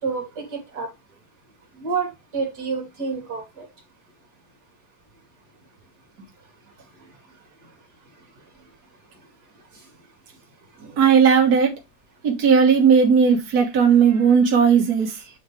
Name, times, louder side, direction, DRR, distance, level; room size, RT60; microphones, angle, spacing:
voice 1, 0.0-0.9 1.8-3.7, right 5 dB, 30° right, 1 dB, 2.6 m, -28 dB
voice 2, 11.0-11.7 12.2-15.2, right 6 dB, 65° right, 1 dB, 0.9 m, -16 dB
8.0 x 4.3 x 3.3 m, 0.22 s
omnidirectional pair, 3.8 m